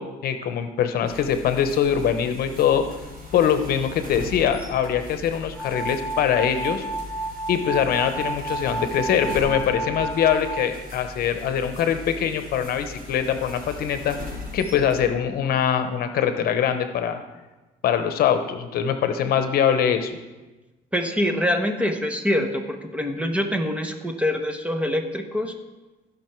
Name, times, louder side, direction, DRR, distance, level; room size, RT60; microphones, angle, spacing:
voice 1, 0.0-2.8 3.3-6.9 7.5-14.2 14.5-17.2 17.8-20.1, left 8 dB, 65° left, 8 dB, 0.9 m, -23 dB
sound 1, 1.1-15.1, left 1 dB, 70° right, 3.6 m, -39 dB
sound 2, 5.6-10.5, right 2 dB, 15° left, 2.9 m, -31 dB
voice 2, 20.9-25.5, left 1 dB, 5° right, 5 dB, 1.0 m, -25 dB
15.5 x 5.6 x 4.5 m, 1.2 s
cardioid pair, 110°, 17 cm